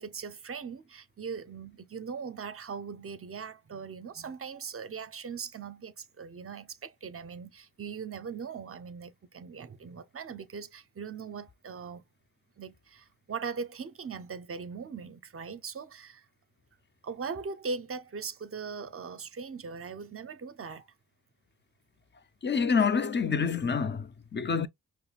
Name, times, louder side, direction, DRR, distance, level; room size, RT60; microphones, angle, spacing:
voice 1, 0.0-12.0 12.6-16.2 17.0-20.9, right 5 dB, 35° right, 0.6 m, -40 dB
voice 2, 22.4-24.7, left 5 dB, 30° left, 0.6 m, -27 dB
5.5 x 2.1 x 2.4 m
cardioid pair, 50°, 39 cm